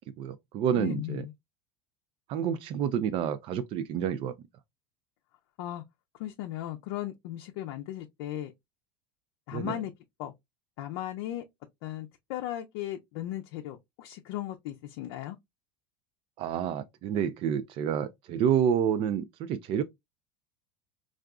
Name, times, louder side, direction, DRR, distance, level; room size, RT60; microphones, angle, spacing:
voice 1, 0.2-1.2 2.3-4.4 9.5-9.8 16.4-19.8, right 8 dB, 45° right, 0.4 m, -29 dB
voice 2, 0.7-1.3 5.6-5.8 6.2-8.5 9.5-9.9 10.2-10.3 10.8-11.4 11.8-15.4, left 13 dB, 70° left, 0.5 m, -36 dB
3.5 x 2.4 x 2.3 m
supercardioid pair, 115°, 13 cm